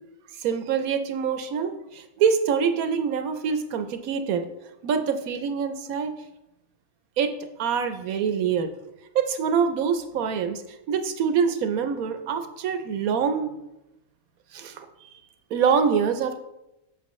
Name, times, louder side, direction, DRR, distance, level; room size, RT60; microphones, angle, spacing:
voice 1, 0.4-4.5 4.8-6.1 7.2-7.3 7.6-8.7 9.1-10.6 10.9-13.6 14.5-15.1 15.5-16.4, right 6 dB, 75° right, 8 dB, 1.1 m, -25 dB
7.6 x 5.8 x 3.1 m, 0.91 s
omnidirectional pair, 1.5 m